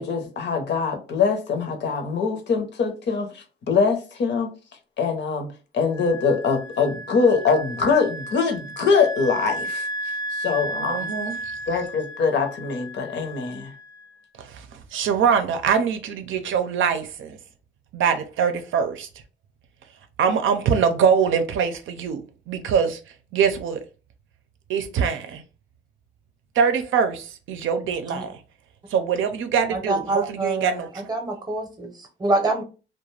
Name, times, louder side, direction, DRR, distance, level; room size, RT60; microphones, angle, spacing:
voice 1, 0.0-4.5 5.0-5.5 5.7-9.9 10.3-11.1 11.7-13.7, left 5 dB, 60° left, 0.7 m, -23 dB
Wind instrument woodwind instrument, 5.9-14.2, right 1 dB, 20° left, 0.4 m, -34 dB
voice 2, 10.6-11.4 14.4-17.4 17.9-19.1 20.2-23.0 23.3-23.8 24.7-25.4 26.6-28.4 28.9-30.9, right 6 dB, 75° right, 0.5 m, -23 dB
voice 3, 29.7-32.6, right 2 dB, 20° right, 0.7 m, -26 dB
2.4 x 2.2 x 3.1 m
cardioid pair, 125°, 20 cm